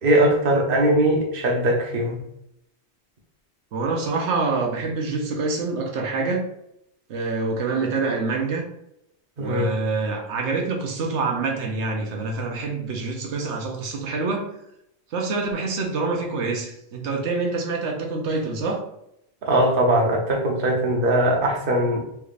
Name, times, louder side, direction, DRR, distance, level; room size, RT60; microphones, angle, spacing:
voice 1, 0.0-2.2 9.4-9.8 19.4-22.0, right 1 dB, 55° right, 0 dB, 0.9 m, -20 dB
voice 2, 3.7-6.5 7.1-8.7 9.4-14.5 15.1-18.8, right 3 dB, 85° right, 1 dB, 1.0 m, -26 dB
3.4 x 3.3 x 2.4 m, 0.77 s
omnidirectional pair, 1.1 m